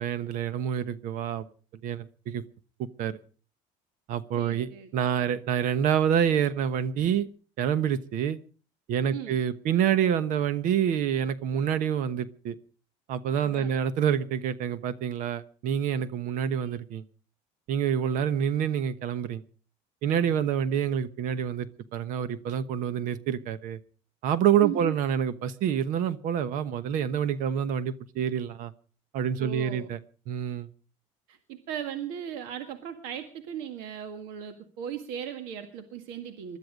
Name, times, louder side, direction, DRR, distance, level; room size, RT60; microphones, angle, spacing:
voice 1, 0.0-1.4 1.8-2.4 2.8-3.2 4.1-7.3 7.6-8.4 8.9-12.6 13.1-17.0 17.7-19.4 20.0-23.8 24.2-28.7 29.1-30.0 30.3-30.7, right 9 dB, 60° right, 14 dB, 1.2 m, -27 dB
voice 2, 4.4-4.9 9.1-9.4 13.3-13.7 24.6-24.9 29.4-29.9 31.3-36.6, right 9 dB, 80° right, 7 dB, 1.9 m, -37 dB
21.0 x 12.5 x 5.2 m, 0.39 s
cardioid pair, 135°, 15 cm